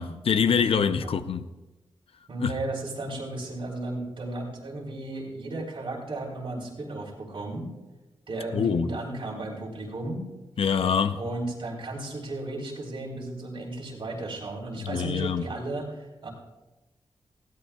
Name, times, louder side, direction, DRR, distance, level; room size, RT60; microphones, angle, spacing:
voice 1, 0.0-1.5 2.4-2.5 8.5-8.9 10.6-11.2 14.8-15.5, left 6 dB, 75° left, 0.6 m, -25 dB
voice 2, 2.3-7.7 8.3-10.2 11.1-16.3, right 2 dB, 60° right, 3.8 m, -34 dB
20.5 x 16.5 x 2.4 m
wide cardioid pair, 145°, 10 cm